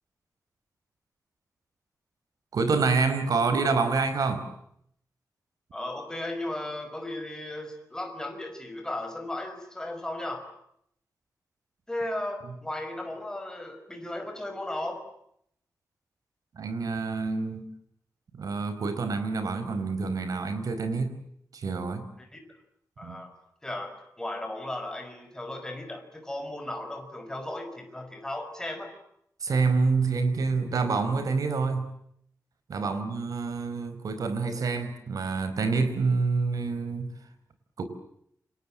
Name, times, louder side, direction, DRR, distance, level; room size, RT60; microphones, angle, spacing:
voice 1, 2.5-4.5 16.5-17.6 18.3-21.1 21.5-22.0 23.0-23.2 29.4-31.9 32.7-37.1 37.8-37.9, right 4 dB, 70° right, 10 dB, 4.8 m, -27 dB
voice 2, 5.7-10.5 11.9-15.0 22.2-22.4 23.0-23.3 23.6-28.9 32.8-33.0, left 1 dB, 10° left, 6 dB, 5.6 m, -36 dB
29.0 x 26.5 x 7.7 m, 0.72 s
wide cardioid pair, 175°, 6 cm